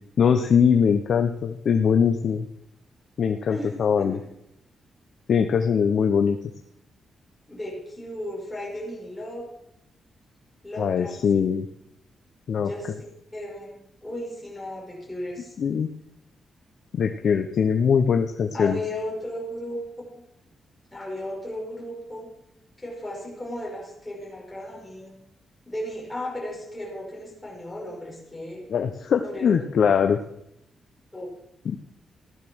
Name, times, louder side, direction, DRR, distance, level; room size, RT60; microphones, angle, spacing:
voice 1, 0.2-2.5 3.2-4.2 5.3-6.5 10.8-11.6 12.5-12.7 15.6-15.9 16.9-18.8 28.7-30.2 31.6-31.8, left 7 dB, 50° left, 5 dB, 0.8 m, -22 dB
voice 2, 7.5-9.5 10.6-11.2 12.6-12.9 13.3-13.8 14.0-15.6 18.5-19.8 20.1-20.2 20.9-22.3 22.8-25.1 25.7-28.6 29.2-29.6 31.1-31.3, left 1 dB, 10° left, -4 dB, 5.5 m, -35 dB
15.5 x 12.0 x 6.2 m, 0.79 s
wide cardioid pair, 175°, 0 cm